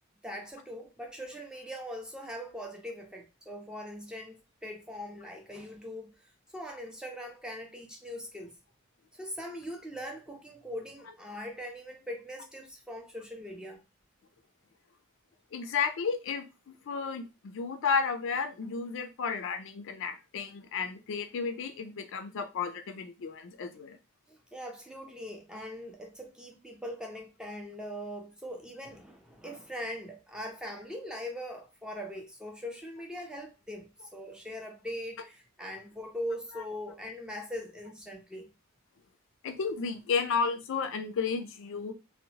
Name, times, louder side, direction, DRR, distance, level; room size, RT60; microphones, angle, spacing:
voice 1, 0.2-6.2 6.5-8.5 9.1-13.8 24.3-38.5, equal, 5° right, 0.4 m, -41 dB
voice 2, 15.5-24.0 39.4-41.9, left 5 dB, 60° left, 0.4 m, -32 dB
2.8 x 2.1 x 2.7 m
head